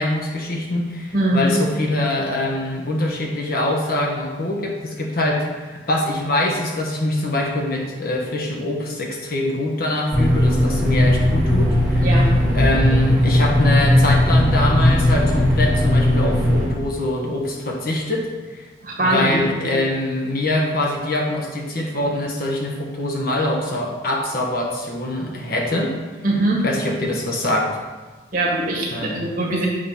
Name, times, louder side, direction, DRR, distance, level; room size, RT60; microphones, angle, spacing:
voice 1, 0.0-18.7 19.0-25.9 26.6-27.7 28.9-29.2, left 1 dB, 50° left, -1 dB, 1.2 m, -23 dB
voice 2, 1.1-1.5 12.0-12.3 18.8-19.7 26.2-26.6 28.3-29.7, right 1 dB, 50° right, -3 dB, 1.7 m, -21 dB
sound 1, 10.1-16.7, left 1 dB, 5° right, 2.2 m, -17 dB
7.7 x 3.9 x 5.7 m, 1.3 s
head